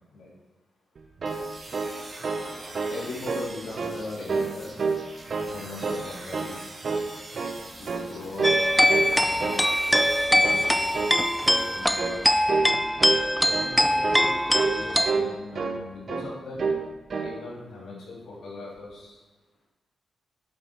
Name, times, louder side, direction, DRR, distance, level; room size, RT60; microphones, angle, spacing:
sound 1, 1.0-2.5 2.8-3.0 3.3-4.0 4.3-5.0 5.3-6.1 6.3-6.6 6.8-7.6 7.9-8.1 8.4-8.6 8.9-9.6 9.9-10.2 10.4-10.7 10.9-11.2 11.5-11.7 12.0-12.2 12.5-12.7 13.0-13.2 13.5-13.7 14.0-14.3 14.5-14.8 15.1-15.8 16.1-16.3 16.6-16.8 17.1-17.4, right 4 dB, 50° right, 0.8 m, -28 dB
sound 2, 1.3-12.4, right 2 dB, 35° right, 1.6 m, -44 dB
voice 1, 2.9-4.7 5.4-6.6 7.5-9.5 10.3-10.9 11.5-12.4 13.4-14.4 14.7-16.6 17.2-19.2, left 2 dB, 75° left, -5 dB, 3.0 m, -39 dB
sound 3, 8.4-15.1, equal, ahead, 0.4 m, -22 dB
8.7 x 6.2 x 4.5 m, 1.2 s
cardioid pair, 95°, 0 cm